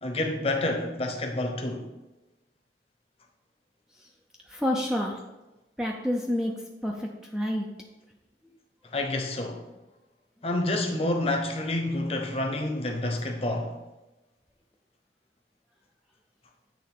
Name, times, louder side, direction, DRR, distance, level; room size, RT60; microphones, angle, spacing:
voice 1, 0.0-1.9 8.8-9.6 10.4-13.7, left 1 dB, 35° left, 0.8 m, -28 dB
voice 2, 4.5-5.2 5.8-6.5 6.8-7.7, left 1 dB, 5° right, 0.5 m, -28 dB
8.5 x 3.3 x 5.7 m
head